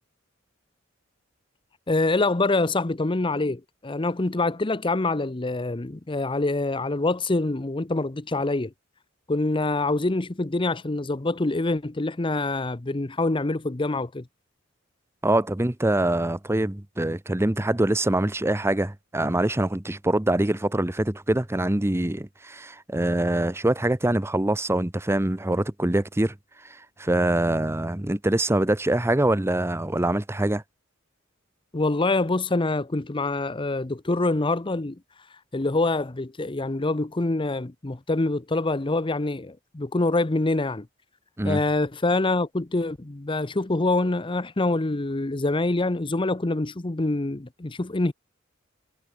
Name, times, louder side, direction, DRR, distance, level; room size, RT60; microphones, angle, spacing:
voice 1, 1.9-8.7 9.3-14.3 31.7-35.0 35.5-40.9 41.4-48.1, left 2 dB, 25° left, 0.7 m, -25 dB
voice 2, 15.2-26.3 26.6-30.6 41.4-41.6, right 1 dB, 15° right, 0.8 m, -24 dB
head